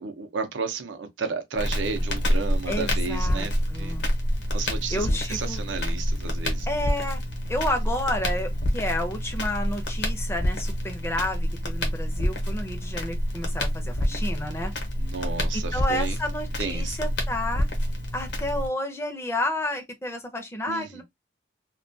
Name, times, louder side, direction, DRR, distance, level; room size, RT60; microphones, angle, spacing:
voice 1, 0.0-4.0 4.5-6.7 14.1-14.3 15.0-16.2 16.6-17.1 20.7-21.0, right 5 dB, 90° right, 0.5 m, -33 dB
Crackle, 1.6-18.7, equal, 70° left, 0.8 m, -27 dB
voice 2, 2.7-4.1 4.9-5.6 6.7-7.2 7.5-14.7 15.5-17.7 18.1-21.0, left 1 dB, 15° left, 0.4 m, -31 dB
2.2 x 2.2 x 2.5 m
head